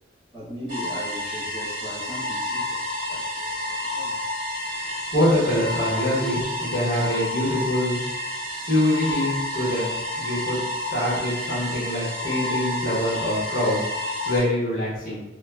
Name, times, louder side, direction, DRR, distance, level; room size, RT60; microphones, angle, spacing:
voice 1, 0.3-4.2 7.0-7.1, right 1 dB, 25° right, -11 dB, 1.1 m, -39 dB
sound 1, 0.7-14.4, left 1 dB, 45° right, 1.5 m, -30 dB
voice 2, 5.1-8.0 8.7-10.6 10.9-15.2, left 1 dB, 50° left, -8 dB, 1.0 m, -24 dB
2.8 x 2.2 x 2.2 m, 0.95 s
head